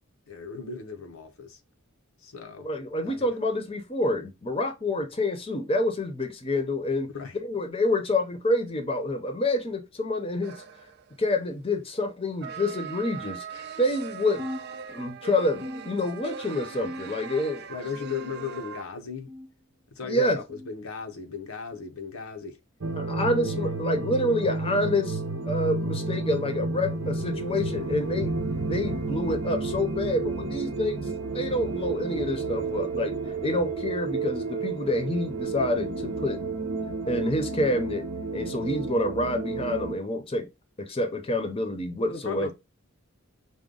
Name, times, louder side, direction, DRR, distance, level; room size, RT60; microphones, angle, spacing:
voice 1, 0.3-1.6 2.2-2.7 3.0-3.3 7.1-7.4 17.7-19.3 19.9-22.6 23.5-23.6 42.1-42.5, left 6 dB, 85° left, 0.8 m, -36 dB
voice 2, 2.6-10.6 11.2-14.4 14.9-17.7 20.0-20.4 23.0-25.2 25.4-28.3 28.7-31.1 31.3-36.4 37.1-38.1 38.3-40.5 40.8-42.5, left 1 dB, 25° left, 0.7 m, -28 dB
sound 1, 10.4-11.2 12.4-18.8, right 6 dB, 50° right, 0.4 m, -40 dB
sound 2, 14.4-15.2 15.6-16.4 16.8-17.4 18.0-18.7 19.3-19.6 20.5-20.7 21.7-21.9 22.9-23.1 24.1-24.3 25.4-25.6 26.6-26.8 27.8-27.9 29.0-29.1, left 1 dB, 15° right, 0.8 m, -42 dB
sound 3, 22.8-40.0, right 3 dB, 80° right, 0.8 m, -31 dB
5.0 x 2.2 x 3.7 m
head